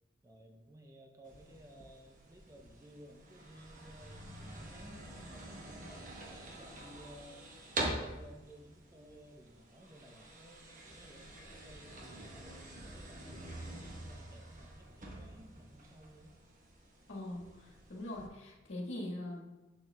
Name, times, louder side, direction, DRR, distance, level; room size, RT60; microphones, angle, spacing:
voice 1, 0.2-7.5 7.9-16.4, right 1 dB, 15° right, 3 dB, 0.5 m, -57 dB
sound 1, 1.2-18.3, right 1 dB, 45° right, 1.0 m, -46 dB
voice 2, 17.1-19.7, left 1 dB, 80° left, -3 dB, 1.5 m, -42 dB
7.6 x 7.3 x 2.2 m, 1.1 s
head